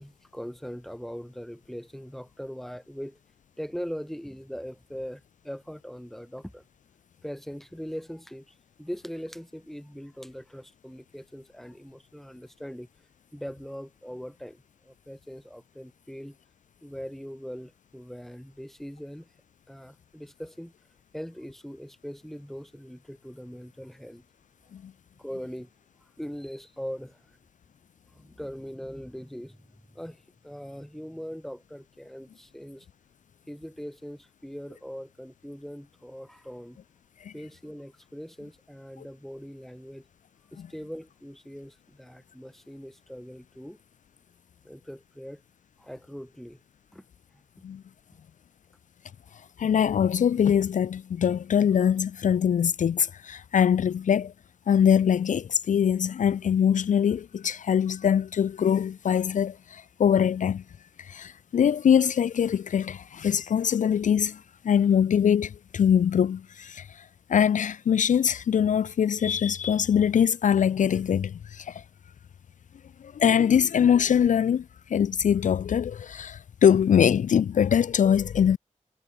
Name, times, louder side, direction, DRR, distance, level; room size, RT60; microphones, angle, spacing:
voice 1, 0.0-3.2 3.6-6.7 7.2-12.9 13.3-16.4 16.8-19.3 19.7-20.7 21.1-24.2 25.2-25.7 26.2-27.4 28.1-32.9 33.5-36.8 37.3-40.1 40.5-43.8 44.6-45.4 45.8-46.6 46.9-47.0, equal, ahead, 2.7 m, -41 dB
voice 2, 49.6-54.3 54.7-60.6 61.0-71.8 73.0-78.6, left 8 dB, 70° left, 0.4 m, -23 dB
wide cardioid pair, 85°, 13 cm